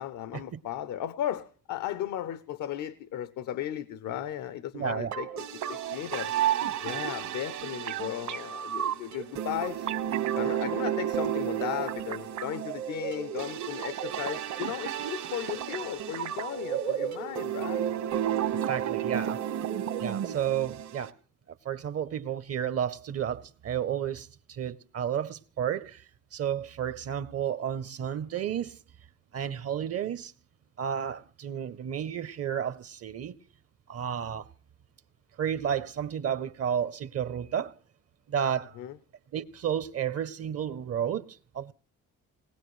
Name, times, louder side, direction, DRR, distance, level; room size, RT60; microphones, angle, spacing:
voice 1, 0.0-6.3 6.8-9.9 10.4-17.8 38.8-39.0, left 11 dB, 80° left, 0.7 m, -36 dB
voice 2, 4.7-5.2 17.0-17.1 18.7-19.4 20.0-21.1 21.6-28.8 29.3-30.3 30.8-33.4 33.9-34.5 35.4-37.7 38.3-38.8 39.3-41.7, right 9 dB, 55° right, 0.7 m, -32 dB
sound 1, 5.1-21.1, right 10 dB, 70° right, 1.3 m, -32 dB
20.0 x 19.5 x 3.1 m
cardioid pair, 90°, 30 cm